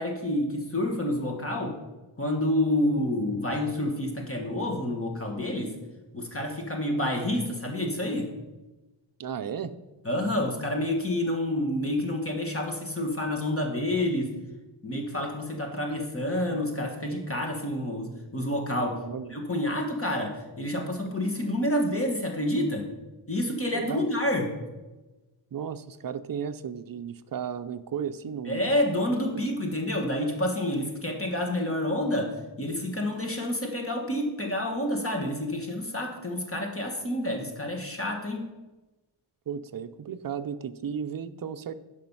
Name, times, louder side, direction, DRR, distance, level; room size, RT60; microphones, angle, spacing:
voice 1, 0.0-1.8 2.2-5.7 6.1-8.3 10.0-14.3 14.8-19.0 19.3-22.8 23.3-24.5 28.5-38.4, left 1 dB, 30° left, 1 dB, 1.5 m, -28 dB
voice 2, 9.2-9.7 19.0-19.4 23.7-24.1 25.5-28.7 29.3-29.4 39.5-41.7, right 7 dB, 45° right, 11 dB, 0.6 m, -34 dB
12.0 x 5.2 x 5.5 m, 1.1 s
wide cardioid pair, 120°, 47 cm